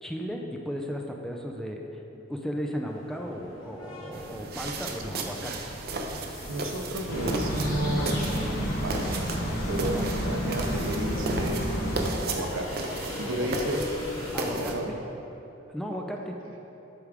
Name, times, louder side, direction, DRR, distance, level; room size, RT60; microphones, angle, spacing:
voice 1, 0.0-2.0 2.3-5.7 9.9-10.1 13.2-13.7 14.3-15.0 15.7-16.4, equal, ahead, 1 dB, 0.4 m, -35 dB
sound 1, 2.9-14.5, left 2 dB, 85° left, 1.3 m, -42 dB
sound 2, 4.1-14.7, right 2 dB, 50° right, 0.5 m, -35 dB
voice 2, 6.5-8.4 8.8-9.2 9.7-11.6 12.2-12.9 13.2-13.9 14.5-14.9 15.9-16.1, right 1 dB, 85° right, 3 dB, 0.7 m, -32 dB
sound 3, 7.1-12.1, equal, 45° left, 1.2 m, -30 dB
8.2 x 3.5 x 4.9 m, 2.9 s
head